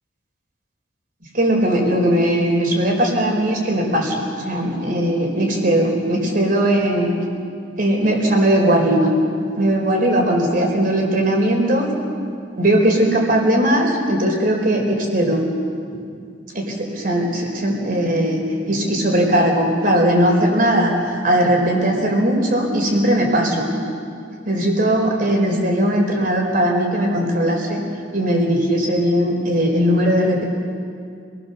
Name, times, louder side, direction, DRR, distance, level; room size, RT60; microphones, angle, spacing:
voice 1, 1.3-4.2 4.4-7.1 7.8-9.1 9.6-11.9 12.6-15.4 16.5-23.7 24.5-27.8 28.1-30.4, right 1 dB, 50° right, 1 dB, 4.5 m, -18 dB
26.5 x 20.0 x 7.0 m, 2.3 s
head